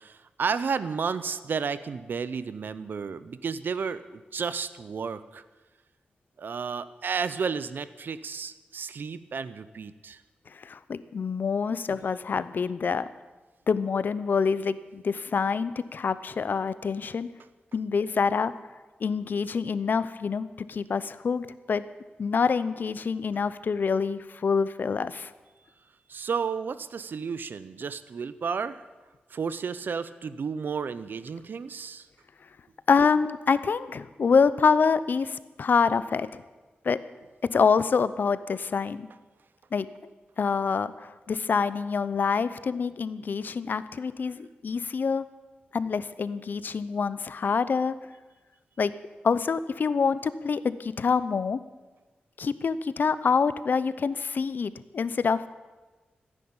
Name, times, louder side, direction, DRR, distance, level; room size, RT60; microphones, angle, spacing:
voice 1, 0.0-5.4 6.4-10.2 11.9-12.0 26.1-28.8 29.3-32.1, right 5 dB, 70° right, 14 dB, 0.8 m, -32 dB
voice 2, 10.5-13.1 13.7-17.3 17.7-18.5 19.0-21.8 22.2-25.3 32.9-36.4 36.8-37.0 37.5-39.1 39.7-39.9 40.4-45.2 45.7-47.9 48.8-49.0 49.2-51.6 52.4-55.5, left 5 dB, 65° left, 15 dB, 0.7 m, -26 dB
15.0 x 10.0 x 8.7 m, 1.2 s
wide cardioid pair, 80°, 4 cm